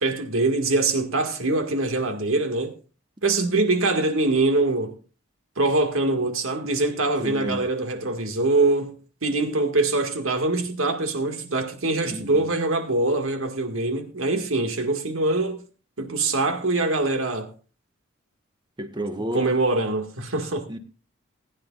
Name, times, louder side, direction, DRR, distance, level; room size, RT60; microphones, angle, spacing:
voice 1, 0.0-2.8 3.2-5.0 5.6-15.6 16.0-17.5 19.3-20.7, right 2 dB, 85° right, 2.0 m, -23 dB
voice 2, 7.2-7.6 12.0-12.4 18.8-19.6 20.7-20.8, right 1 dB, 20° right, 1.2 m, -31 dB
20.0 x 9.9 x 2.5 m
head